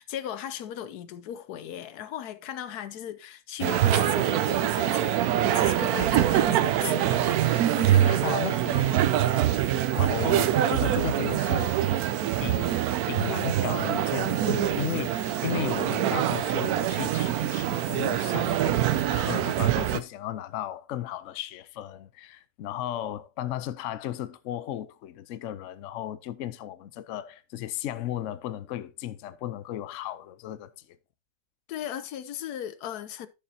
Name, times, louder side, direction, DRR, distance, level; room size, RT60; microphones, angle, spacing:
voice 1, 0.0-5.2 5.5-8.2 8.6-9.1 9.5-9.7 31.7-33.3, left 10 dB, 85° left, 1.2 m, -37 dB
sound 1, 3.6-20.0, right 11 dB, 80° right, 1.1 m, -24 dB
voice 2, 8.0-8.7 9.3-9.4 9.7-11.8 12.4-30.7, left 11 dB, 65° left, 0.9 m, -35 dB
11.5 x 6.9 x 2.7 m
omnidirectional pair, 1.6 m